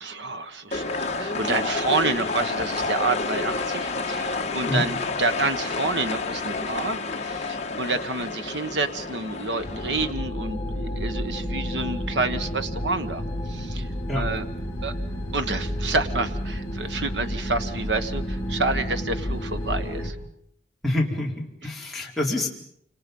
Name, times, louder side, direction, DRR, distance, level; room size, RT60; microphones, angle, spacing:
voice 1, 0.0-13.9 14.2-14.5 14.8-14.9 15.3-20.2, right 3 dB, 75° right, 9 dB, 1.3 m, -28 dB
sound 1, 0.7-10.1, left 3 dB, 40° left, 1.7 m, -29 dB
sound 2, 9.6-20.1, equal, 15° left, 6.7 m, -31 dB
voice 2, 20.8-22.5, left 1 dB, ahead, -4 dB, 4.3 m, -26 dB
28.5 x 26.5 x 5.5 m, 0.69 s
head